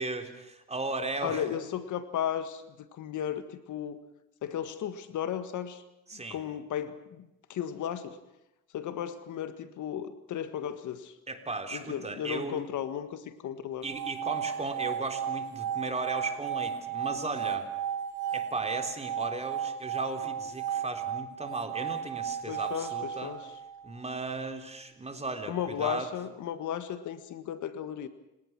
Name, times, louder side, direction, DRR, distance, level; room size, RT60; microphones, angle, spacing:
voice 1, 0.0-1.5 6.1-6.4 11.3-12.6 13.8-17.7 18.3-23.4 23.8-26.1, right 3 dB, 20° right, 5 dB, 3.7 m, -36 dB
voice 2, 1.2-4.0 4.4-5.8 6.1-8.2 8.7-11.1 11.7-13.8 22.5-23.4 25.5-28.1, left 9 dB, 75° left, 11 dB, 1.8 m, -35 dB
sound 1, 13.8-24.0, right 8 dB, 70° right, 1.6 m, -34 dB
30.0 x 18.0 x 6.1 m, 0.90 s
cardioid pair, 90°, 30 cm